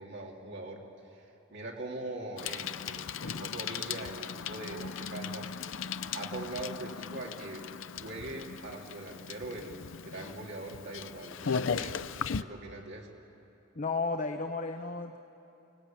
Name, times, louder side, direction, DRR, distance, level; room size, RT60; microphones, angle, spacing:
voice 1, 0.0-5.5 6.1-7.7 8.0-13.1, right 2 dB, 60° right, -1 dB, 3.1 m, -42 dB
Bicycle, 2.4-12.4, left 6 dB, 65° left, 0.6 m, -37 dB
voice 2, 13.8-15.2, left 4 dB, 40° left, 6 dB, 0.8 m, -33 dB
29.5 x 18.0 x 8.9 m, 2.9 s
head